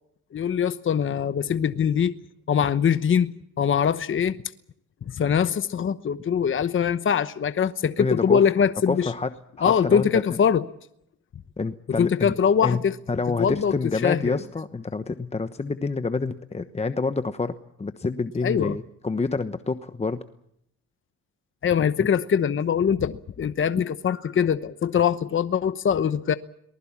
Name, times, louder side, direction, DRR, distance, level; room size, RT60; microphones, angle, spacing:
voice 1, 0.3-2.2 2.5-4.4 5.1-9.1 9.6-10.6 12.0-12.9 13.4-14.4 18.4-18.8 21.6-26.3, left 7 dB, 40° left, 1.0 m, -23 dB
voice 2, 8.0-8.5 8.9-10.4 11.6-12.3 12.6-12.8 13.1-17.5 17.8-20.2 22.0-22.1 23.7-23.8, left 4 dB, 20° left, 1.1 m, -28 dB
23.5 x 20.0 x 7.3 m
cardioid pair, 90°, 30 cm